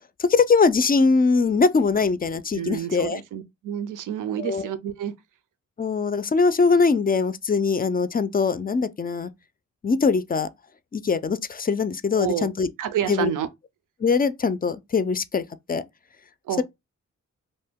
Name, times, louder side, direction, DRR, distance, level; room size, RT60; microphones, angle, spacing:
voice 1, 0.2-3.2 4.4-4.7 5.8-9.3 9.8-10.5 10.9-12.7 13.1-13.3 14.0-15.4 15.7-15.8 16.6-16.7, left 4 dB, 30° left, 0.4 m, -22 dB
voice 2, 2.6-5.1 12.1-12.5 12.8-13.5 16.5-16.6, right 10 dB, 75° right, 0.5 m, -29 dB
2.5 x 2.2 x 3.5 m
cardioid pair, 55°, 32 cm